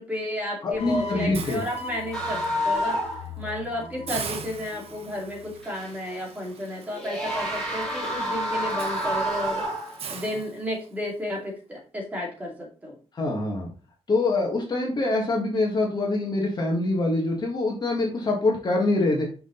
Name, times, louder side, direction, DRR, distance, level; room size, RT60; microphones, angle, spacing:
voice 1, 0.0-3.0 3.4-9.6 10.1-13.0, left 1 dB, 15° right, -2 dB, 2.4 m, -32 dB
voice 2, 0.6-1.6 13.2-13.7 14.1-19.3, left 2 dB, 45° left, 0 dB, 1.7 m, -24 dB
sound 1, 0.7-5.9, left 3 dB, 80° left, 1.7 m, -40 dB
Hiss, 1.3-2.5 2.9-3.1 3.5-3.6 4.1-11.1, right 6 dB, 70° right, 0.9 m, -41 dB
sound 2, 2.1-3.3 3.5-3.6 5.6-6.1 6.9-10.3, equal, 5° left, 2.6 m, -28 dB
6.0 x 4.9 x 3.9 m, 0.37 s
wide cardioid pair, 170°, 11 cm